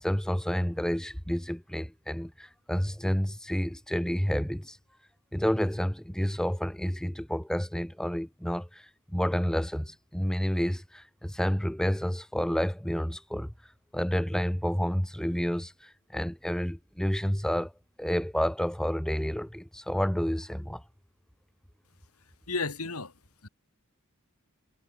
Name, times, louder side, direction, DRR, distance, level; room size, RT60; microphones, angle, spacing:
voice 1, 0.0-4.8 5.3-13.5 13.9-17.7 18.0-20.8, equal, 5° left, 0.7 m, -30 dB
voice 2, 22.5-23.5, left 3 dB, 85° left, 3.4 m, -34 dB
head